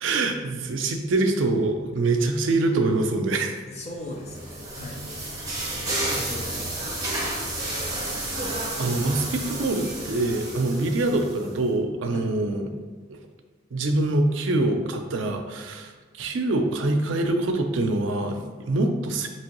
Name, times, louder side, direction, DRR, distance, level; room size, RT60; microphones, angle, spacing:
voice 1, 0.0-3.6 8.3-8.5 8.8-12.7 13.1-13.2 13.7-19.3, right 2 dB, 80° right, 5 dB, 0.4 m, -25 dB
voice 2, 3.7-5.0 5.9-7.0 12.1-12.3, left 1 dB, 35° left, -1 dB, 0.6 m, -38 dB
sound 1, 4.0-11.5, right 1 dB, 20° right, 0.8 m, -31 dB
4.5 x 2.9 x 2.9 m, 1.4 s
head